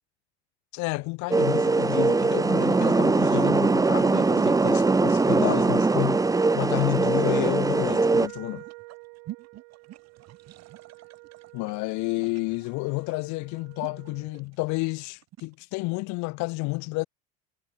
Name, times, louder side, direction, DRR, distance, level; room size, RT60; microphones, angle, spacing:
voice 1, 0.7-8.6 11.5-17.1, left 26 dB, 60° left, 0.9 m, -30 dB
sound 1, 0.8-15.5, right 14 dB, 55° right, 6.8 m, -48 dB
sound 2, 1.3-8.3, right 3 dB, 10° right, 0.8 m, -22 dB
Wind instrument woodwind instrument, 7.7-14.4, right 40 dB or more, 70° right, 3.2 m, -49 dB
hypercardioid pair, 85°, 32 cm